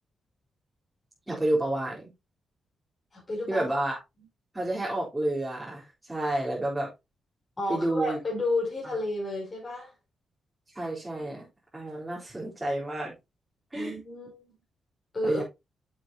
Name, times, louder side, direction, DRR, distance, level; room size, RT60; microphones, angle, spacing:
voice 1, 1.3-2.1 3.5-3.9 4.5-6.9 7.7-8.2 10.7-11.4 11.7-13.1 13.7-14.0 15.2-15.4, right 1 dB, 15° right, 4.0 m, -30 dB
voice 2, 3.1-3.7 7.6-9.9 13.7-14.5 15.1-15.4, left 2 dB, 30° left, 5.1 m, -31 dB
9.5 x 7.6 x 2.9 m
cardioid pair, 90°, 0 cm